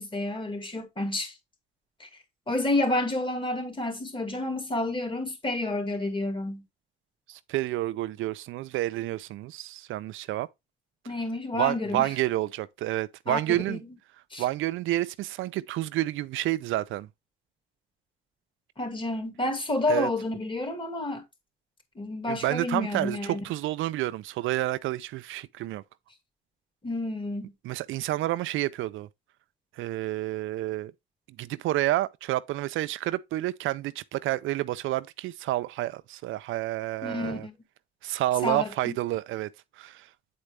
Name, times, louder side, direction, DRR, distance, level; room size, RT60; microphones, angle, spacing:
voice 1, 0.0-1.3 2.0-2.1 2.5-6.6 11.1-12.1 13.3-13.8 14.3-14.4 18.8-21.2 22.0-23.4 26.8-27.5 37.0-37.5 38.4-39.0, left 2 dB, 25° left, 2.4 m, -30 dB
voice 2, 7.3-10.5 11.5-13.8 14.4-17.1 19.9-20.1 22.3-25.8 27.6-29.1 29.8-30.9 31.4-37.5 38.0-39.5 39.8-40.1, right 15 dB, 85° right, 0.5 m, -29 dB
8.6 x 4.3 x 3.3 m
cardioid pair, 90°, 20 cm